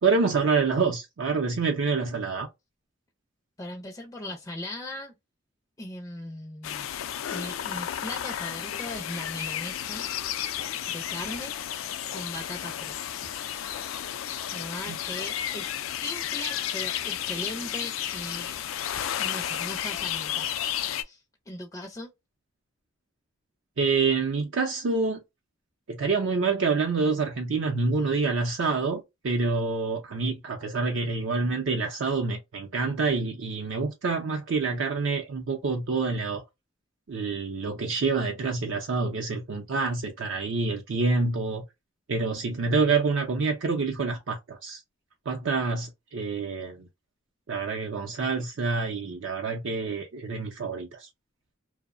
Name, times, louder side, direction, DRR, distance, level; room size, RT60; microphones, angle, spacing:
voice 1, 0.0-2.5 14.9-15.0 23.8-25.2 25.9-36.4 37.1-41.6 42.1-44.8 45.3-46.9 47.5-51.1, right 4 dB, 65° right, 0.5 m, -27 dB
voice 2, 3.6-5.1 5.8-6.9 7.3-10.1 10.9-11.5 12.1-13.3 14.5-18.6 19.2-20.5 21.0-22.1, left 1 dB, 15° left, 0.4 m, -38 dB
sound 1, 6.6-21.0, left 10 dB, 85° left, 0.3 m, -32 dB
2.6 x 2.0 x 2.4 m
head